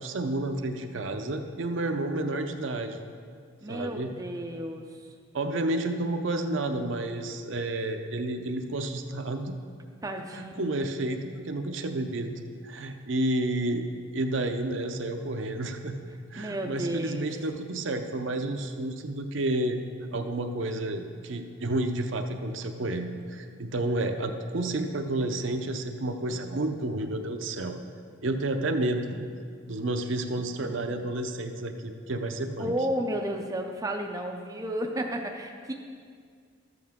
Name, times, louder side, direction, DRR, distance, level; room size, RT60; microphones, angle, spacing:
voice 1, 0.0-3.0 3.7-4.1 5.3-9.5 10.3-13.8 14.1-15.9 16.3-19.8 20.1-27.8 28.2-29.2 29.7-32.7, right 2 dB, 65° right, 5 dB, 0.6 m, -30 dB
voice 2, 3.6-5.1 10.0-10.6 16.4-17.3 32.6-35.7, right 1 dB, 15° right, 2 dB, 0.4 m, -32 dB
12.5 x 7.8 x 3.6 m, 2.1 s
head